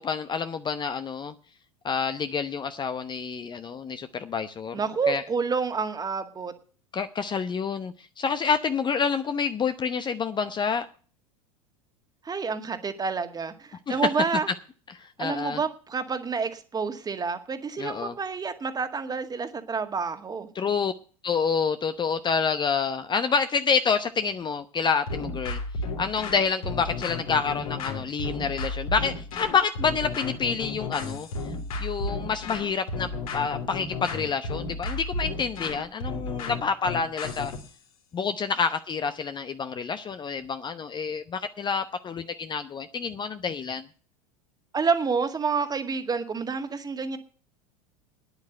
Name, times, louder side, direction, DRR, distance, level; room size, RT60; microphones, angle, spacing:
voice 1, 0.0-1.3 1.8-4.8 5.1-5.2 6.9-10.9 13.9-14.0 14.9-15.6 17.8-18.1 20.5-20.9 21.2-25.6 26.0-31.3 31.8-37.5 38.1-43.8, left 5 dB, 25° left, 0.9 m, -28 dB
voice 2, 4.7-6.5 12.2-14.5 15.2-20.5 44.7-47.2, right 5 dB, 20° right, 2.0 m, -28 dB
sound 1, 25.1-37.7, left 3 dB, 70° left, 3.3 m, -33 dB
9.7 x 8.1 x 9.0 m
hypercardioid pair, 85°, 19 cm